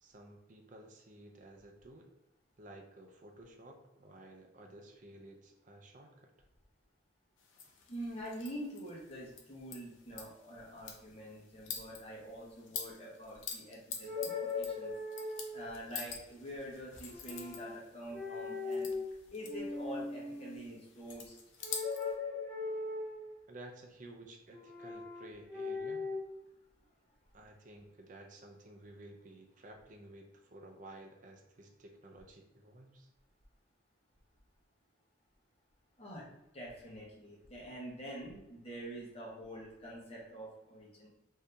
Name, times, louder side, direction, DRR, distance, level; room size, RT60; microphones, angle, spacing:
voice 1, 0.0-2.1 2.6-6.3 23.5-26.1 27.3-33.1, right 1 dB, 45° right, 3 dB, 0.5 m, -54 dB
sound 1, 7.4-22.1, left 6 dB, 90° left, 0.6 m, -48 dB
voice 2, 7.9-14.9 15.5-18.9 19.3-21.3 36.0-36.2 36.5-41.1, equal, 35° left, -5 dB, 1.0 m, -46 dB
sound 2, 14.0-15.8 17.1-17.8 18.1-19.0 19.4-20.6 21.6-23.4 24.5-26.2, left 3 dB, ahead, 1.1 m, -39 dB
2.7 x 2.6 x 3.4 m, 0.92 s
head